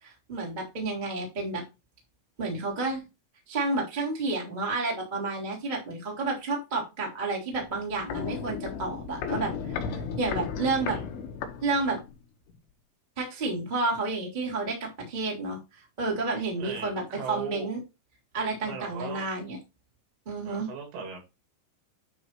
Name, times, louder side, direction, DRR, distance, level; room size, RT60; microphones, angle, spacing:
voice 1, 0.0-1.6 2.4-3.0 3.5-11.0 11.6-12.0 13.2-17.8 18.3-19.6 20.2-20.7, right 3 dB, 15° right, -2 dB, 2.0 m, -30 dB
Walk footsteps, 7.5-12.2 12.5-12.6, left 6 dB, 70° left, 2.8 m, -35 dB
voice 2, 16.6-17.7 18.6-19.3 20.5-21.2, right 6 dB, 70° right, 2 dB, 4.9 m, -39 dB
9.8 x 4.2 x 4.4 m, 0.26 s
omnidirectional pair, 5.9 m